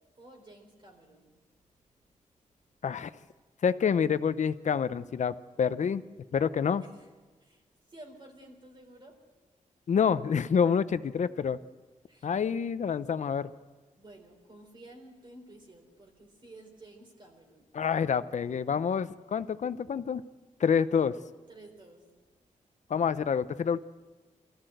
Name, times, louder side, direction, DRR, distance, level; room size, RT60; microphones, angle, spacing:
voice 1, 0.2-1.3 7.4-7.6 7.9-9.2 12.1-12.3 14.0-17.9 21.5-22.1, right 1 dB, 35° right, 2 dB, 3.8 m, -52 dB
voice 2, 3.6-6.0 6.3-6.8 9.9-11.6 12.2-13.5 17.7-20.2 20.6-21.1 22.9-23.8, left 7 dB, 65° left, 14 dB, 0.7 m, -27 dB
24.0 x 14.5 x 7.9 m, 1.3 s
wide cardioid pair, 140°, 13 cm